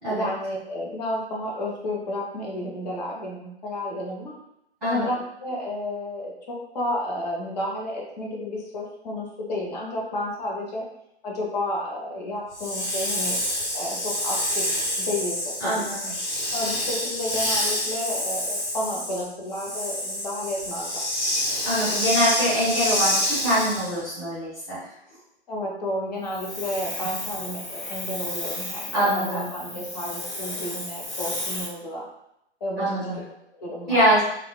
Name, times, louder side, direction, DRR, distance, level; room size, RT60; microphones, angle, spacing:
voice 1, 0.1-4.4 4.8-10.9 11.2-13.4 13.7-14.7 15.0-15.9 16.5-21.1 25.5-32.1 32.6-32.9 33.6-34.2, left 1 dB, 40° left, -3 dB, 0.7 m, -31 dB
Hiss, 12.5-24.0 26.3-31.7, left 1 dB, 85° left, 0.9 m, -29 dB
voice 2, 15.6-16.1 21.6-24.8 28.9-29.5 32.8-33.2 33.9-34.2, equal, ahead, -29 dB, 0.3 m, -24 dB
2.9 x 2.1 x 2.3 m, 0.79 s
figure-of-eight pair, 125°, 33 cm